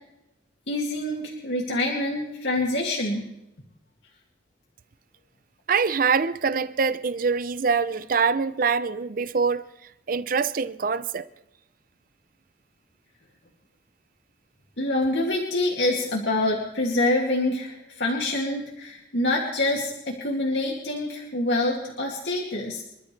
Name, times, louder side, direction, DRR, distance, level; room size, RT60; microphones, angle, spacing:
voice 1, 0.7-3.2 14.8-22.8, left 2 dB, 90° left, 2.5 m, -26 dB
voice 2, 5.7-9.6 10.1-11.3, right 5 dB, 55° right, 0.6 m, -24 dB
26.5 x 13.0 x 3.3 m
head